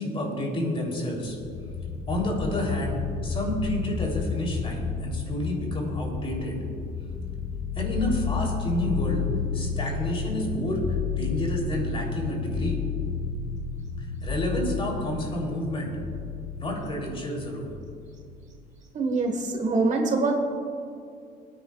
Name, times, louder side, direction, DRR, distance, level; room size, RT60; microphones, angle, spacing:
voice 1, 0.0-1.4 2.1-6.6 7.7-9.2 9.5-12.8 14.0-15.9 16.6-17.7, left 1 dB, 35° left, -1 dB, 3.2 m, -30 dB
sound 1, 1.1-18.5, left 5 dB, 80° left, 1.1 m, -31 dB
voice 2, 18.9-20.4, right 3 dB, 45° right, 3 dB, 1.4 m, -24 dB
23.5 x 9.5 x 2.4 m, 2.5 s
cardioid pair, 110°, 17 cm